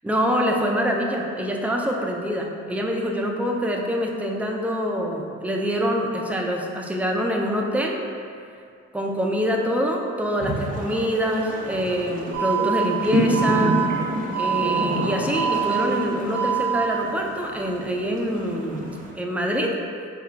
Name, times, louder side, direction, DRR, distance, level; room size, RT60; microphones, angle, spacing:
voice 1, 0.0-8.0 8.9-13.8 14.4-19.8, equal, 5° right, 0 dB, 0.5 m, -25 dB
sound 1, 10.4-19.1, right 1 dB, 25° right, 0.9 m, -29 dB
Alarm, 12.3-12.8 13.3-13.8 14.3-14.8 15.3-15.8 16.3-16.8, right 8 dB, 85° right, 0.7 m, -24 dB
4.7 x 2.4 x 4.4 m, 2.3 s
cardioid pair, 90°, 30 cm